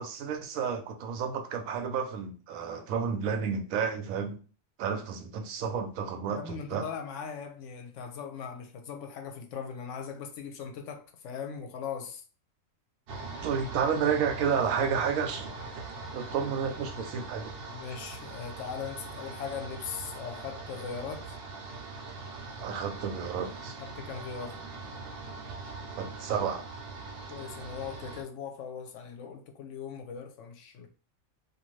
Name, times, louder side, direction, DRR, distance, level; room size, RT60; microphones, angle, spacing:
voice 1, 0.0-4.4 4.8-6.8 13.4-15.5 16.1-17.5 22.6-23.7 26.0-26.6, right 6 dB, 90° right, 1.0 m, -31 dB
voice 2, 6.3-12.2 17.7-21.4 23.8-24.6 27.3-30.9, left 6 dB, 70° left, 0.9 m, -39 dB
sound 1, 13.1-28.2, right 3 dB, 55° right, 0.7 m, -42 dB
2.5 x 2.4 x 3.0 m
omnidirectional pair, 1.4 m